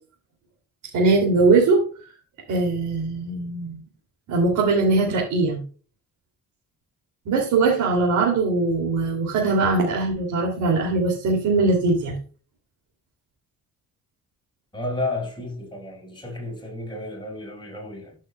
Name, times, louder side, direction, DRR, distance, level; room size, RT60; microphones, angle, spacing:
voice 1, 0.9-1.9 2.5-3.8 4.3-5.6 7.2-12.2, right 3 dB, 85° right, 2.9 m, -21 dB
voice 2, 14.7-18.2, left 2 dB, 15° left, 5.1 m, -32 dB
15.0 x 6.5 x 2.3 m
cardioid pair, 90°, 30 cm